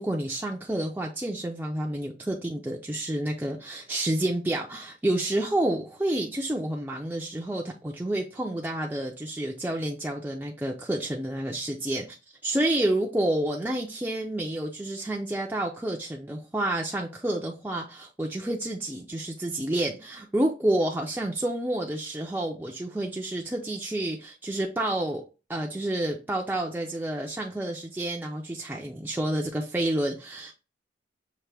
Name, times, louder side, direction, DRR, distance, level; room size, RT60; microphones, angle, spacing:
voice 1, 0.0-12.2 12.4-25.2 25.5-30.5, right 1 dB, 10° right, 0.4 m, -29 dB
5.8 x 2.5 x 3.3 m
head